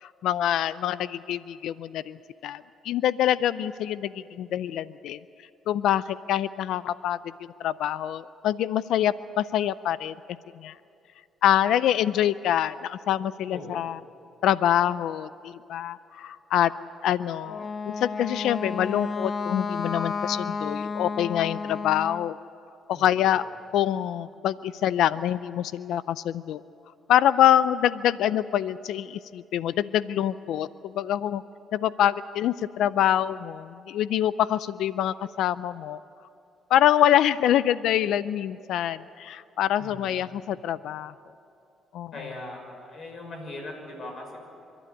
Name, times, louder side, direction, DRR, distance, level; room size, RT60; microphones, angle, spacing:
voice 1, 0.0-2.2 2.4-5.2 5.7-7.2 7.6-10.1 10.6-10.7 11.4-14.0 14.4-16.7 17.0-22.4 22.9-23.4 23.7-26.6 27.1-31.4 31.7-36.0 36.7-41.1 41.9-42.3, left 11 dB, 80° left, 16 dB, 0.4 m, -25 dB
Wind instrument woodwind instrument, 17.3-22.3, left 4 dB, 40° left, 0.6 m, -32 dB
voice 2, 39.8-40.1 42.1-44.4, left 2 dB, 55° left, 2 dB, 6.1 m, -40 dB
28.0 x 12.0 x 9.8 m, 2.5 s
cardioid pair, 90°, 0 cm